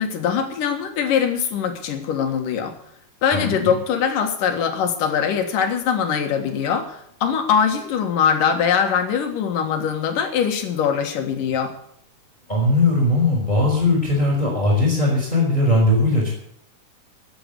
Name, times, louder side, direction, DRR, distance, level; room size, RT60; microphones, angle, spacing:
voice 1, 0.0-2.7 3.2-11.7, left 7 dB, 75° left, 5 dB, 3.2 m, -22 dB
voice 2, 3.3-3.7 12.5-16.3, left 2 dB, 15° left, -2 dB, 4.6 m, -19 dB
13.5 x 8.9 x 8.1 m, 0.70 s
omnidirectional pair, 3.8 m